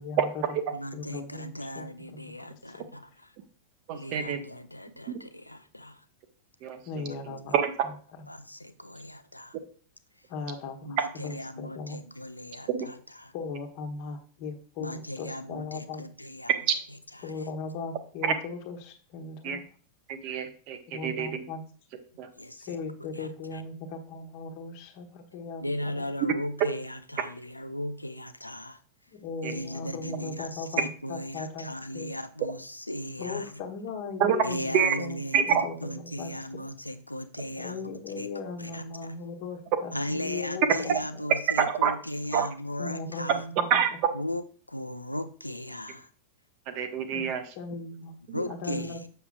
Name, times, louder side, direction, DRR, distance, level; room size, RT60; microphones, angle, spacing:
voice 1, 0.0-0.6 0.9-1.5 1.7-2.8 6.8-8.3 10.3-12.0 13.3-16.0 17.2-19.6 20.9-21.6 22.7-26.1 29.1-32.1 33.2-35.2 35.5-36.3 37.6-41.0 42.8-43.8 47.1-47.3 47.5-48.2 48.5-49.1, left 4 dB, 45° left, 4 dB, 1.2 m, -38 dB
voice 2, 0.7-3.3 3.9-6.0 8.3-9.6 10.8-13.3 14.8-16.5 17.1-17.5 22.4-22.7 23.1-23.6 25.6-28.8 29.4-33.5 34.4-37.9 38.2-38.3 38.6-38.8 39.9-43.4 44.1-46.1 48.3-49.0, left 1 dB, 85° left, 10 dB, 0.5 m, -37 dB
voice 3, 3.9-4.4 5.1-5.2 6.6-6.8 7.5-7.7 12.7-12.9 18.2-18.3 19.4-19.6 20.1-21.3 22.2-22.3 29.4-29.5 34.2-34.4 34.7-34.9 35.3-35.7 41.6-41.9 42.3-42.5 43.7-43.9 46.7-47.4 48.3-48.4, right 8 dB, 45° right, 8 dB, 0.9 m, -26 dB
7.0 x 6.8 x 2.4 m, 0.42 s
figure-of-eight pair, 90°, 0 cm